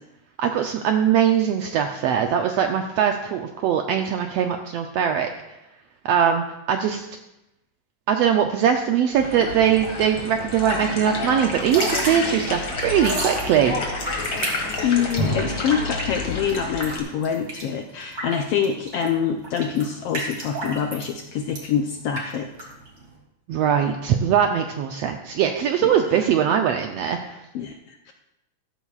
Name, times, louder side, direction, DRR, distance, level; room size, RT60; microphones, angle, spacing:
voice 1, 0.4-5.3 6.0-7.1 8.1-13.8 23.5-27.4, right 8 dB, 80° right, 4 dB, 1.5 m, -21 dB
sound 1, 9.1-17.0, left 3 dB, 45° left, 2.2 m, -30 dB
Drip / Trickle dribble, 11.6-23.2, right 2 dB, 40° right, 3.2 m, -33 dB
voice 2, 14.8-22.7 25.8-26.3 27.5-28.1, left 7 dB, 80° left, 3 dB, 1.3 m, -26 dB
sound 2, 15.2-17.0, equal, 10° right, 3.7 m, -32 dB
14.5 x 14.0 x 2.4 m, 0.93 s
omnidirectional pair, 3.4 m